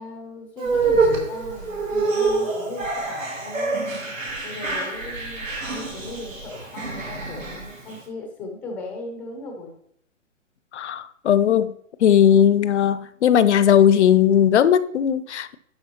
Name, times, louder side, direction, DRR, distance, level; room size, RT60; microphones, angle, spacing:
voice 1, 0.0-3.8 4.4-9.7, left 2 dB, 5° left, 0.5 m, -37 dB
sound 1, 0.6-8.0, right 3 dB, 85° right, 2.4 m, -26 dB
voice 2, 10.7-11.8 12.0-15.5, left 9 dB, 60° left, 0.6 m, -17 dB
11.5 x 4.6 x 2.9 m
hypercardioid pair, 140°, 38 cm